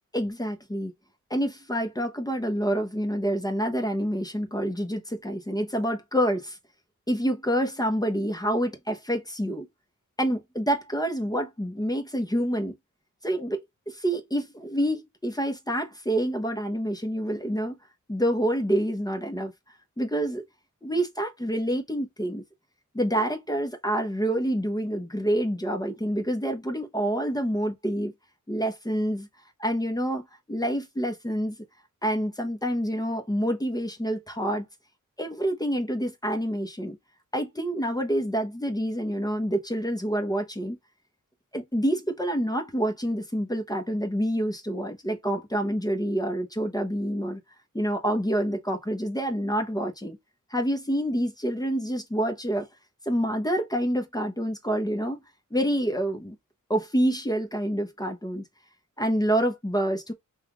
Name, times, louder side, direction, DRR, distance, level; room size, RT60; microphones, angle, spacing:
voice 1, 0.1-0.9 1.3-6.6 7.1-9.7 10.2-12.7 13.2-17.7 18.1-19.5 20.0-20.4 20.8-22.4 22.9-28.1 28.5-29.3 29.6-31.6 32.0-34.6 35.2-37.0 37.3-40.8 41.5-47.4 47.7-50.2 50.5-52.7 53.1-55.2 55.5-56.4 56.7-58.4 59.0-60.1, equal, 10° left, 0.9 m, -27 dB
5.5 x 2.5 x 3.0 m
wide cardioid pair, 125°, 32 cm